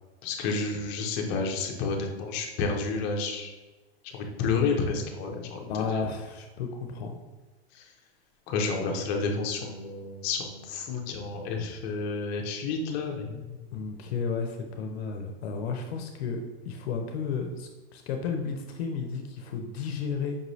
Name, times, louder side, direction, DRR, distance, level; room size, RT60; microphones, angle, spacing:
voice 1, 0.2-3.5 4.1-6.0 7.7-7.9 8.5-13.6, left 4 dB, 35° left, 2 dB, 0.6 m, -30 dB
voice 2, 5.7-7.2 13.7-16.4 16.7-20.4, left 5 dB, 70° left, 4 dB, 0.6 m, -33 dB
5.2 x 3.0 x 2.7 m, 1.2 s
supercardioid pair, 155°, 32 cm